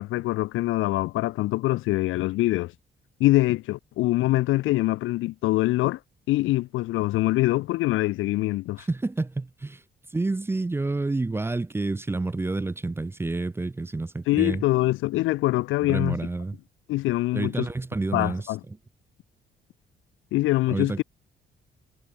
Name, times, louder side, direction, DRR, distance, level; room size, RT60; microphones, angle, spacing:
voice 1, 0.0-2.7 3.2-6.0 6.3-8.8 14.3-16.2 16.9-17.7 18.1-18.6 20.3-21.0, left 18 dB, 85° left, 0.5 m, -24 dB
voice 2, 8.8-9.8 10.1-14.6 15.8-16.6 17.3-18.8 20.7-21.0, right 2 dB, 10° right, 0.4 m, -29 dB
cardioid pair, 90°, 20 cm